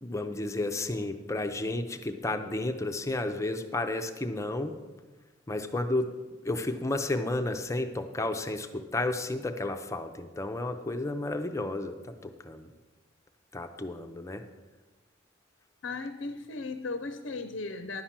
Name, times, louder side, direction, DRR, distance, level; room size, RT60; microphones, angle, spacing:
voice 1, 0.0-4.8 5.5-6.1 6.4-12.7 13.5-14.5, left 2 dB, 15° left, 7 dB, 0.6 m, -32 dB
voice 2, 15.8-18.0, left 3 dB, 60° left, 9 dB, 0.6 m, -36 dB
11.0 x 5.8 x 7.4 m, 1.2 s
head